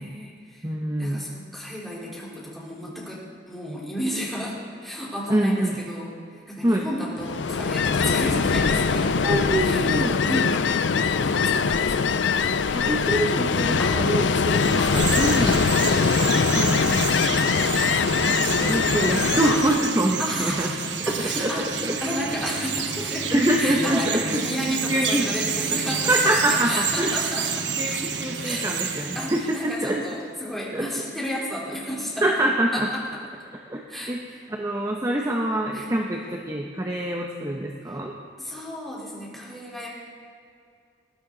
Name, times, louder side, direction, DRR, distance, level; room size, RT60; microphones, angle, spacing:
voice 1, 0.0-0.7 1.0-9.1 9.6-10.7 11.1-12.2 13.8-15.0 15.4-16.5 20.2-23.3 23.6-27.7 28.4-28.7 29.2-32.2 32.7-33.2 33.9-34.4 35.7-35.9 37.9-38.0 38.4-39.9, equal, ahead, -6 dB, 3.8 m, -33 dB
voice 2, 0.6-1.2 5.3-5.8 6.6-6.9 9.2-10.2 12.7-15.5 16.5-17.7 18.6-20.7 21.0-22.0 23.3-24.4 24.9-25.2 26.1-27.4 27.8-30.1 30.7-31.0 32.2-32.9 33.7-38.1, right 1 dB, 20° right, 0 dB, 0.9 m, -25 dB
Ocean, 7.2-20.0, left 5 dB, 85° left, 0.5 m, -22 dB
Chirp tweet, 14.3-29.9, right 6 dB, 85° right, 1.1 m, -29 dB
20.5 x 12.5 x 3.9 m, 2.3 s
head